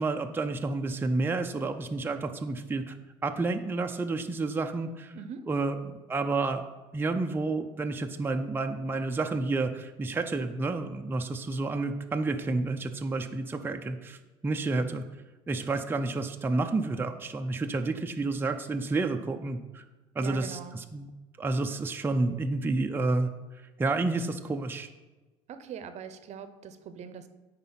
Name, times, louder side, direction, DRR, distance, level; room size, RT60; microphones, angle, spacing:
voice 1, 0.0-2.9 3.2-5.2 5.5-6.6 6.9-15.0 15.5-19.8 20.1-21.1 21.4-23.3 23.8-24.9, right 3 dB, 15° right, 5 dB, 0.6 m, -30 dB
voice 2, 5.1-5.5 20.2-20.8 25.5-27.3, right 7 dB, 55° right, 10 dB, 0.8 m, -42 dB
9.6 x 4.1 x 5.7 m, 1.2 s
supercardioid pair, 85°, 14 cm